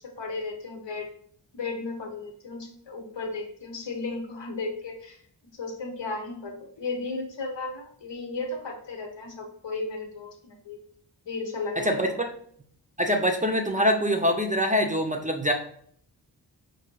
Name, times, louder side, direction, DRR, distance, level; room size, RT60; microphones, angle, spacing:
voice 1, 0.2-1.1 1.5-5.2 5.5-10.8 11.3-12.0, left 3 dB, 75° left, 3 dB, 0.9 m, -34 dB
voice 2, 11.8-12.3 13.0-15.5, equal, 20° right, 3 dB, 0.4 m, -24 dB
4.9 x 2.6 x 3.0 m, 0.62 s
wide cardioid pair, 65°, 44 cm